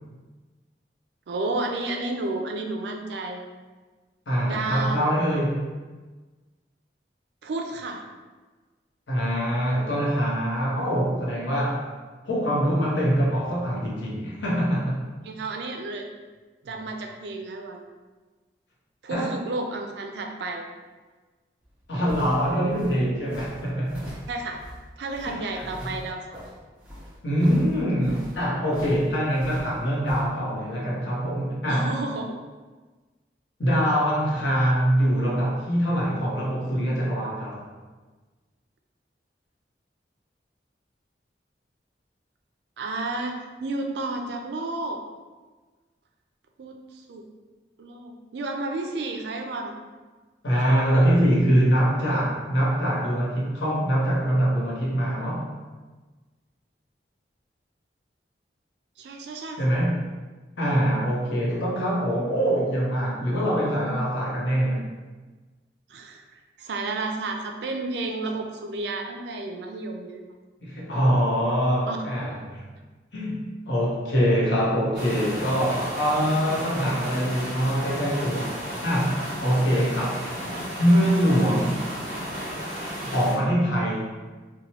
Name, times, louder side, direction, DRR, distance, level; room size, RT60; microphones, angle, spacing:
voice 1, 1.3-3.4 4.4-5.1 7.4-8.0 15.2-16.1 16.6-17.8 19.0-20.6 24.3-24.6 25.0-26.2 31.7-32.4 42.8-45.0 46.6-47.2 47.8-49.7 59.0-59.6 63.6-64.1 65.9-66.2 66.6-70.2 71.9-72.0, right 2 dB, 75° right, 3 dB, 0.4 m, -31 dB
voice 2, 4.3-5.7 9.1-11.9 12.2-15.0 19.1-19.3 21.9-24.1 25.3-25.9 27.2-31.9 33.6-37.7 50.4-55.5 59.6-60.0 60.6-64.9 70.6-72.6 73.1-80.2 80.8-81.8 83.0-84.1, equal, 85° left, -4 dB, 0.8 m, -24 dB
sound 1, 21.6-30.3, equal, 5° right, 0.6 m, -43 dB
sound 2, 74.9-83.3, equal, 50° right, 0.8 m, -34 dB
2.9 x 2.2 x 2.8 m, 1.3 s
head